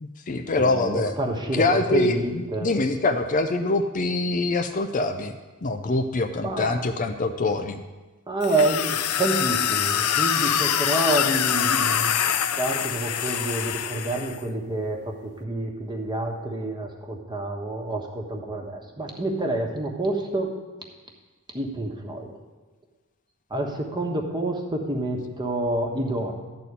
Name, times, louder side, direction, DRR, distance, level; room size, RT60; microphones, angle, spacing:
voice 1, 0.0-1.1 1.5-5.3 5.6-7.8, left 2 dB, 35° left, 7 dB, 0.5 m, -24 dB
voice 2, 0.6-2.7 6.4-6.8 8.3-12.1 12.6-20.5 21.5-22.4 23.5-26.3, right 2 dB, 20° right, 1 dB, 1.2 m, -28 dB
sound 1, 8.4-14.4, left 9 dB, 85° left, 0.6 m, -24 dB
12.5 x 4.2 x 8.2 m, 1.2 s
head